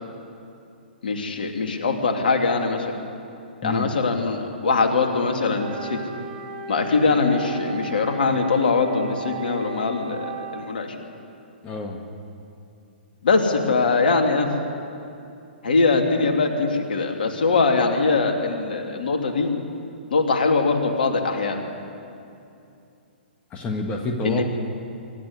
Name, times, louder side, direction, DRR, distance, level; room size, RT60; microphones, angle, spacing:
voice 1, 1.0-2.9 3.6-6.0 6.7-10.9 13.2-14.5 15.6-19.5 20.1-21.6 24.2-24.4, left 4 dB, 60° left, 3 dB, 2.9 m, -22 dB
Wind instrument woodwind instrument, 5.6-10.8, right 5 dB, 40° right, 3.4 m, -36 dB
voice 2, 11.6-12.0 23.5-24.4, left 2 dB, 20° left, 2 dB, 1.7 m, -28 dB
25.0 x 12.0 x 9.7 m, 2.6 s
figure-of-eight pair, 120°, 6 cm